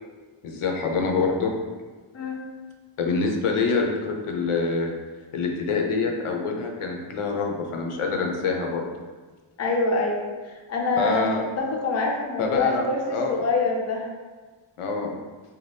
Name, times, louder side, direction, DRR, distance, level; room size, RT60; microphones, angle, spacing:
voice 1, 0.4-1.5 3.0-4.9 5.3-8.9 11.0-11.4 12.4-13.4 14.8-15.2, left 4 dB, 80° left, 1 dB, 0.6 m, -26 dB
voice 2, 9.6-14.1, left 3 dB, 35° left, -1 dB, 0.4 m, -25 dB
2.6 x 2.2 x 3.3 m, 1.3 s
wide cardioid pair, 105°, 50 cm